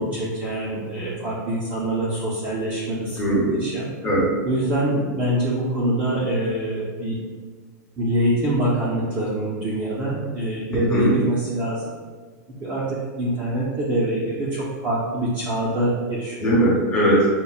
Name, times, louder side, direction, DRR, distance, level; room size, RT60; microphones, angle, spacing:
voice 1, 0.0-3.2 3.5-3.9 4.5-7.2 8.0-12.0 12.6-16.5, right 1 dB, 15° right, -7 dB, 0.4 m, -24 dB
voice 2, 3.2-3.7 4.0-4.3 10.7-11.1 16.4-17.3, right 1 dB, 10° left, -7 dB, 0.8 m, -20 dB
5.2 x 2.1 x 2.3 m, 1.5 s
supercardioid pair, 170°, 10 cm